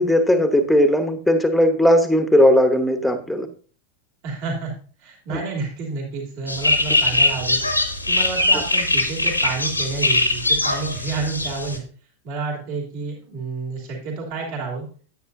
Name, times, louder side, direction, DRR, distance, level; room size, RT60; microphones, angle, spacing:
voice 1, 0.0-3.5 5.3-5.4, equal, ahead, 8 dB, 1.1 m, -17 dB
voice 2, 4.2-4.7 5.0-7.6 8.1-11.8 12.2-14.9, right 4 dB, 45° right, -1 dB, 2.7 m, -29 dB
sound 1, 6.5-11.8, left 2 dB, 85° left, 1.2 m, -21 dB
9.5 x 8.7 x 2.6 m, 0.40 s
figure-of-eight pair, 90°, 0 cm